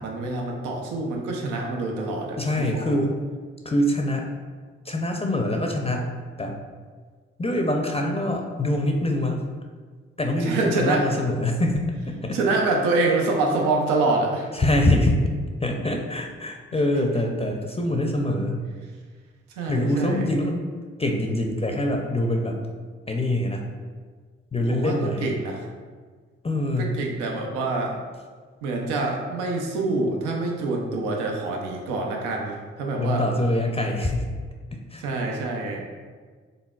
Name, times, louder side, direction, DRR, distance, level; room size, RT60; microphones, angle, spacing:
voice 1, 0.0-3.0 10.4-11.2 12.3-14.5 16.7-16.8 19.5-20.3 24.7-25.7 26.8-28.0 28.6-33.3 35.0-35.8, right 3 dB, 85° right, 0 dB, 0.6 m, -26 dB
voice 2, 2.4-3.2 3.6-4.3 4.9-6.1 6.4-6.6 7.4-9.4 10.2-12.4 14.5-15.2 15.6-18.6 19.7-20.7 21.0-22.6 23.1-23.6 24.5-25.3 26.4-26.9 33.0-34.3 34.9-35.0, left 1 dB, 20° left, 2 dB, 0.5 m, -24 dB
3.9 x 3.8 x 2.3 m, 1.5 s
hypercardioid pair, 45°, 31 cm